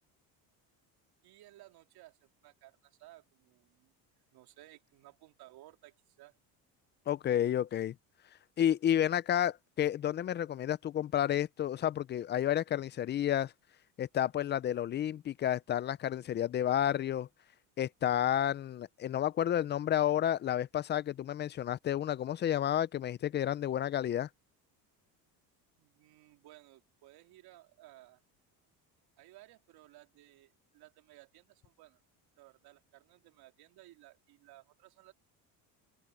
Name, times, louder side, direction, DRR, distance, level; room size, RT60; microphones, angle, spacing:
voice 1, 1.2-3.9 4.3-6.4 25.8-28.2 29.2-32.0 32.4-35.1, right 16 dB, 65° right, 3.1 m, -58 dB
voice 2, 7.1-7.9 8.6-13.5 14.0-17.3 17.8-24.3, left 11 dB, 30° left, 0.4 m, -31 dB
open air
cardioid pair, 130°, 40 cm